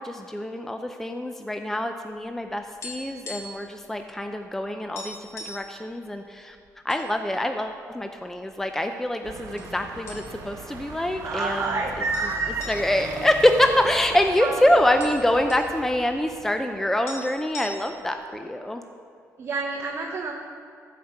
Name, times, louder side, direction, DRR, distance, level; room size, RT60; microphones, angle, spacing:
voice 1, 0.0-6.6 6.8-11.8 12.7-18.8, left 1 dB, 5° left, 6 dB, 0.5 m, -25 dB
sound 1, 2.2-3.7 4.0-4.1 4.5-4.6 4.9-5.7 6.4-7.0 7.4-7.6 8.3-8.9 9.6-9.7 10.1-10.6 10.9-11.0 12.1-14.2 14.5-14.6 14.8-15.7 16.7-16.8 17.1-18.1, left 1 dB, 50° left, 2.3 m, -40 dB
sound 2, 9.2-16.5, right 3 dB, 75° right, 1.4 m, -40 dB
voice 2, 11.2-12.7 13.0-13.1 14.4-14.6 19.4-20.3, right 4 dB, 40° right, 0 dB, 1.0 m, -28 dB
14.5 x 5.1 x 6.8 m, 2.4 s
cardioid pair, 120°, 6 cm